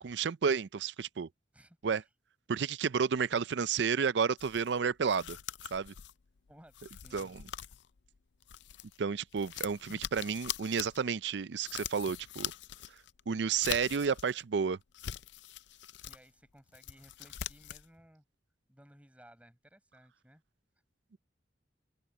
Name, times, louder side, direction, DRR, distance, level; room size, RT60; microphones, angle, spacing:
voice 1, 0.0-1.3 1.8-2.0 2.5-5.4 5.7-5.9 7.1-7.4 9.0-12.5 13.3-14.8, right 6 dB, 65° right, 0.5 m, -31 dB
voice 2, 1.5-2.1 6.5-7.6 16.1-18.2 18.7-20.4, equal, 5° right, 5.2 m, -59 dB
sound 1, 4.4-9.0 9.3-14.4 14.8-16.2 16.6-17.9, left 11 dB, 65° left, 0.5 m, -43 dB
open air
head